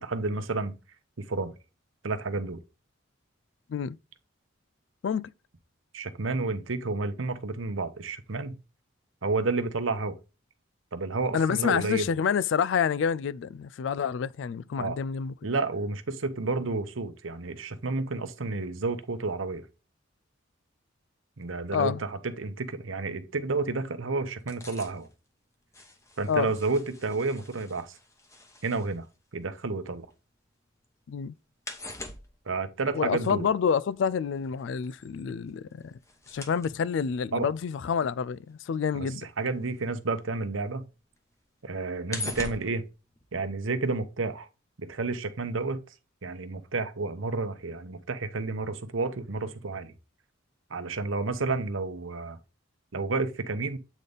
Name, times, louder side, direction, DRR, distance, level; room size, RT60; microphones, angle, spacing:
voice 1, 0.0-0.7 1.2-1.5 2.0-2.6 5.9-8.6 9.2-10.2 10.9-12.1 14.8-15.0 15.4-19.6 21.4-25.1 26.2-28.0 28.6-29.0 29.3-30.1 32.5-33.5 37.3-37.5 38.9-39.1 39.4-40.9 41.6-42.8 43.3-44.5 44.8-45.8 46.2-49.9 50.7-52.4 52.9-53.8, right 3 dB, 80° right, 0.8 m, -30 dB
voice 2, 11.3-15.3 21.7-22.0 26.3-26.5 31.1-31.3 32.9-35.9 36.3-39.3, left 6 dB, 65° left, 0.3 m, -28 dB
sound 1, 24.4-30.4 30.7-40.4 40.8-43.9 44.2-44.3, left 2 dB, 15° left, 0.9 m, -44 dB
8.2 x 4.0 x 3.4 m
head